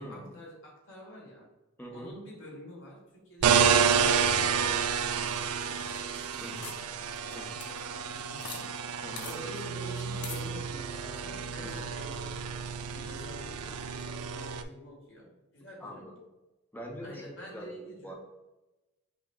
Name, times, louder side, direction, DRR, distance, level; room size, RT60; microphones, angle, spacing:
voice 1, 0.0-1.5 1.9-4.6 4.9-6.6 7.2-8.8 9.2-12.6 12.9-16.1 17.0-18.1, equal, 60° left, -3 dB, 1.4 m, -48 dB
voice 2, 1.8-2.1 6.4-7.0 7.3-7.7 9.0-9.3 11.6-11.9 15.8-16.1 16.7-18.1, equal, 10° left, 1 dB, 0.5 m, -44 dB
sound 1, 3.4-14.6, right 6 dB, 80° right, 0.3 m, -30 dB
sound 2, 4.7-8.6 8.9-9.0 9.2-9.4 10.2-10.5, left 6 dB, 90° left, 0.6 m, -46 dB
5.6 x 2.1 x 3.5 m, 1.1 s
head